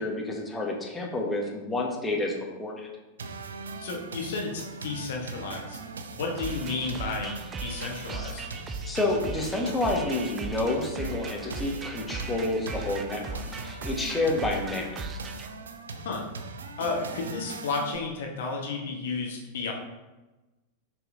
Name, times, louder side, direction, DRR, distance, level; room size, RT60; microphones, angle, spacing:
voice 1, 0.0-2.9 8.8-15.0, left 2 dB, 10° left, -2 dB, 1.4 m, -29 dB
sound 1, 3.2-18.0, right 4 dB, 70° right, 0.5 m, -40 dB
voice 2, 3.8-5.8 6.2-7.3 7.6-8.5 16.0-16.2 16.8-19.7, left 4 dB, 60° left, 0 dB, 1.2 m, -32 dB
sound 2, 6.4-15.5, right 3 dB, 20° right, 0.6 m, -38 dB
6.8 x 6.1 x 2.6 m, 1.1 s
figure-of-eight pair, 90°, 0 cm